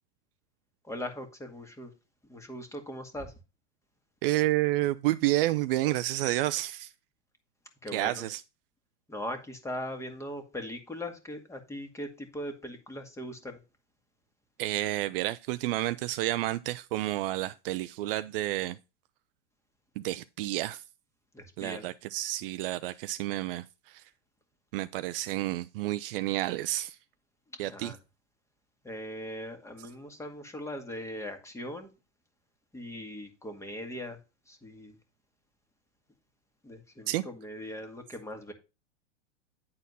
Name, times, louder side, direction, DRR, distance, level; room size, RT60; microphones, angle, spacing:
voice 1, 0.8-1.9 2.3-3.3 7.8-8.3 9.1-13.6 21.3-21.9 27.7-28.0 28.8-31.9 32.7-34.2 34.5-35.0 36.6-38.5, left 1 dB, 10° left, 1.8 m, -40 dB
voice 2, 4.2-6.9 7.9-8.4 14.6-18.8 20.0-20.8 21.6-24.0 24.7-27.0 27.6-27.9 37.1-37.2, right 16 dB, 50° right, 0.5 m, -30 dB
9.8 x 4.2 x 5.5 m
hypercardioid pair, 125°, 36 cm